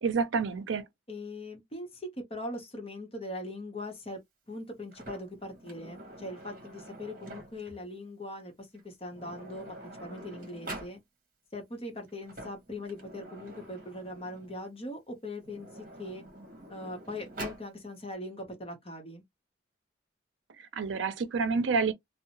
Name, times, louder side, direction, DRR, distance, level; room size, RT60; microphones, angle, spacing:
voice 1, 0.0-0.9 20.6-21.9, right 5 dB, 85° right, 0.5 m, -29 dB
voice 2, 1.1-4.2 4.5-11.0 11.5-16.2 16.7-19.2, left 1 dB, 30° left, 0.8 m, -41 dB
Sliding door, 4.9-7.8 8.7-8.8 9.1-11.0 12.1-14.6 15.4-17.7, right 1 dB, 45° right, 1.0 m, -46 dB
2.7 x 2.0 x 2.8 m
head